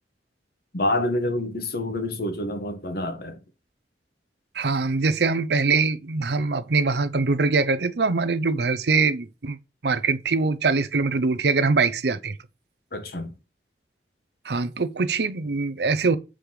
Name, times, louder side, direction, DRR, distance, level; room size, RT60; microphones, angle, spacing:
voice 1, 0.7-3.4 12.9-13.4, left 1 dB, 55° left, 1.4 m, -27 dB
voice 2, 4.5-9.6 9.8-12.4 14.4-16.2, right 4 dB, 65° right, 0.6 m, -23 dB
7.6 x 5.0 x 4.8 m
head